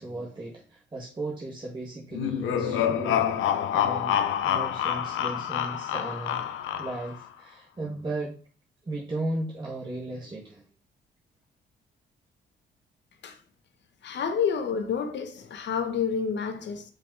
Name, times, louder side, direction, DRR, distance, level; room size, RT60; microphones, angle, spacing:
voice 1, 0.0-6.4 6.8-8.3 8.8-10.6, right 2 dB, 20° right, 1.6 m, -36 dB
sound 1, 2.1-7.2, left 9 dB, 85° left, 0.8 m, -27 dB
voice 2, 14.0-16.8, left 6 dB, 65° left, 1.2 m, -29 dB
5.4 x 5.2 x 4.6 m
cardioid pair, 90°, 20 cm